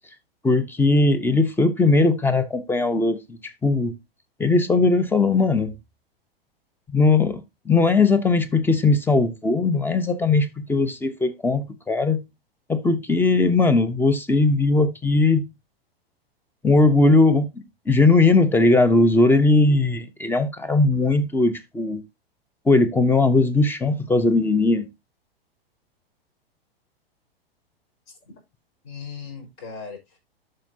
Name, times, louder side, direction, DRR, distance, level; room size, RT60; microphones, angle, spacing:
voice 1, 0.4-4.0 4.4-5.7 6.9-12.2 12.7-15.5 16.6-22.0 22.7-24.9, left 3 dB, 5° left, 0.9 m, -19 dB
voice 2, 28.8-30.2, left 6 dB, 40° left, 5.5 m, -38 dB
12.0 x 6.5 x 2.8 m
figure-of-eight pair, 105°, 30 cm